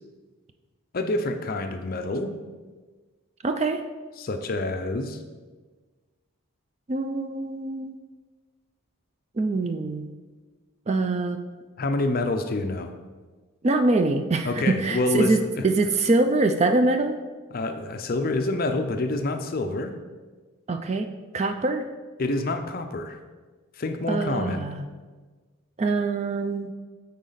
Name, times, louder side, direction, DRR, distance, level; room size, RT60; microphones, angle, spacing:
voice 1, 0.9-2.3 4.2-5.2 11.8-12.9 14.4-15.6 17.5-19.9 22.2-23.2 23.8-24.7, left 2 dB, 40° left, 6 dB, 0.5 m, -27 dB
voice 2, 3.4-3.8 6.9-7.9 9.4-10.1 10.9-11.4 13.6-15.4 15.6-17.2 20.7-21.1 21.3-21.8 24.1-24.8 25.8-26.7, right 3 dB, 30° right, 7 dB, 0.3 m, -24 dB
9.1 x 4.1 x 3.9 m, 1.4 s
head